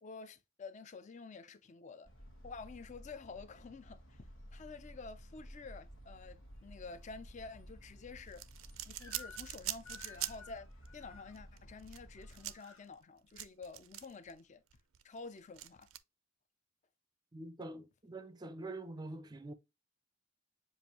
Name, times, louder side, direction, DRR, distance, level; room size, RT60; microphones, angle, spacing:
voice 1, 0.0-2.1 2.4-8.4 8.9-10.7 10.9-14.6 15.0-15.9, left 4 dB, 35° left, 0.5 m, -50 dB
sound 1, 2.1-12.5, equal, 70° left, 1.4 m, -54 dB
sound 2, 8.3-10.6 10.9-11.0 11.3-14.3 14.7-16.0, right 14 dB, 80° right, 0.4 m, -43 dB
Crying sobbing / Screech, 9.0-9.6 9.8-11.3 12.2-12.9, left 4 dB, 90° left, 1.4 m, -55 dB
voice 2, 17.3-19.5, right 2 dB, 20° right, 0.5 m, -45 dB
7.1 x 2.5 x 2.9 m
head